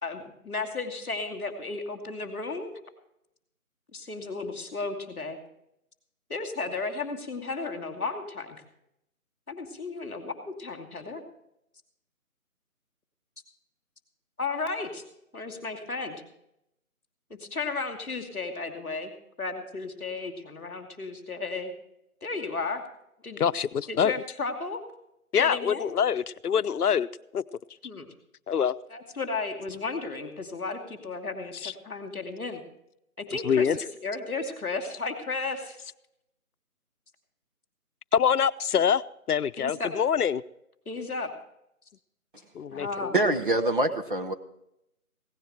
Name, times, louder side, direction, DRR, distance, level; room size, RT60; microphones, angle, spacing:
voice 1, 0.0-2.7 3.9-5.4 6.3-8.6 9.5-11.2 14.4-15.0 15.3-16.2 17.3-19.1 19.4-21.7 22.2-22.8 23.2-23.4 23.9-24.8 25.4-25.9 27.8-28.1 28.9-32.6 33.2-35.8 39.6-39.9 40.8-41.3 42.7-43.1, left 3 dB, 5° right, -15 dB, 1.0 m, -34 dB
voice 2, 23.4-24.1 25.3-27.1 27.3-27.4 28.5-28.7 31.6-31.7 33.3-33.8 38.1-40.4 42.5-43.1, left 7 dB, 90° left, 15 dB, 0.7 m, -25 dB
voice 3, 43.1-44.3, right 2 dB, 35° right, 6 dB, 1.0 m, -24 dB
17.0 x 10.5 x 4.4 m, 0.79 s
figure-of-eight pair, 170°, 44 cm